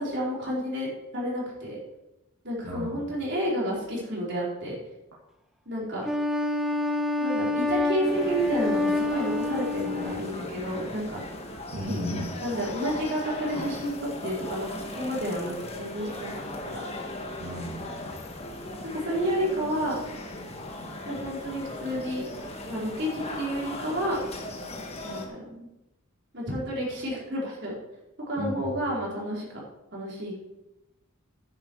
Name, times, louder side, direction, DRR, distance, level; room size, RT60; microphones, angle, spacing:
voice 1, 0.0-1.8 2.4-4.8 5.7-6.1 7.2-11.2 12.4-16.3 16.7-16.9 18.8-20.0 21.1-22.3 22.7-24.2 25.0-25.7 26.3-27.7 28.3-29.6 29.9-30.4, equal, 50° right, -5 dB, 4.5 m, -30 dB
voice 2, 2.6-3.0 11.7-12.3 17.4-18.1 28.4-28.9, equal, 70° right, -6 dB, 2.5 m, -34 dB
Wind instrument woodwind instrument, 6.0-10.4, left 2 dB, ahead, 0.8 m, -27 dB
sound 1, 8.0-25.3, left 1 dB, 30° left, 1.5 m, -38 dB
10.5 x 10.0 x 4.7 m, 0.93 s
head